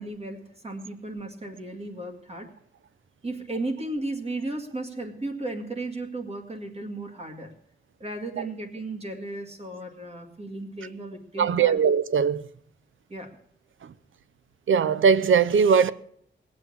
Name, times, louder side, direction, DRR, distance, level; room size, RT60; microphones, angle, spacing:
voice 1, 0.0-2.5 3.2-7.5 8.0-11.8 13.1-13.4, right 2 dB, 30° right, 2.0 m, -35 dB
voice 2, 11.4-12.5 13.8-13.9 14.7-15.9, right 6 dB, 85° right, 0.7 m, -20 dB
19.0 x 7.6 x 7.2 m
wide cardioid pair, 170°, 20 cm